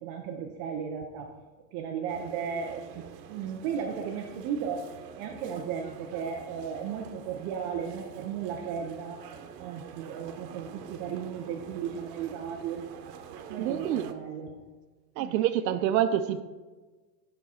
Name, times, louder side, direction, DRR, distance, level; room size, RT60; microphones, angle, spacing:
voice 1, 0.0-1.3 1.7-3.0 3.3-9.2 9.6-12.9 13.5-14.6 15.2-15.4, right 7 dB, 25° right, 2 dB, 0.3 m, -35 dB
sound 1, 2.1-14.1, right 8 dB, 65° right, 1.0 m, -46 dB
voice 2, 13.6-14.1 15.2-16.4, right 10 dB, 85° right, 9 dB, 0.7 m, -27 dB
9.2 x 6.1 x 4.2 m, 1.3 s
supercardioid pair, 140°, 50 cm